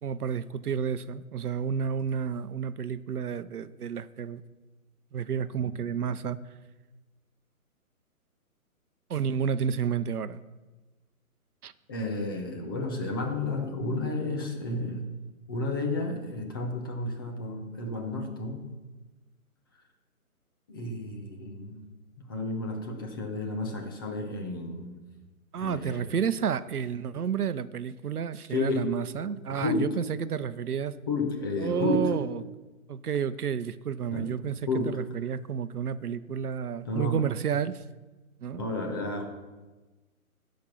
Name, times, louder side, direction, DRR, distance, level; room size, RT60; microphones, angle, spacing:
voice 1, 0.0-4.4 5.1-6.5 9.1-10.4 11.6-11.7 25.5-30.9 31.6-32.4 32.9-37.8 38.4-38.6, right 7 dB, 90° right, 15 dB, 0.7 m, -31 dB
voice 2, 11.9-15.1 15.5-18.7 20.7-21.8 22.2-25.0 25.6-26.1 28.5-28.9 29.5-30.0 31.1-32.2 34.1-34.3 34.7-35.0 36.8-37.2 38.5-39.3, left 2 dB, 15° left, 3 dB, 0.6 m, -31 dB
15.0 x 5.2 x 5.8 m, 1.2 s
hypercardioid pair, 145°, 44 cm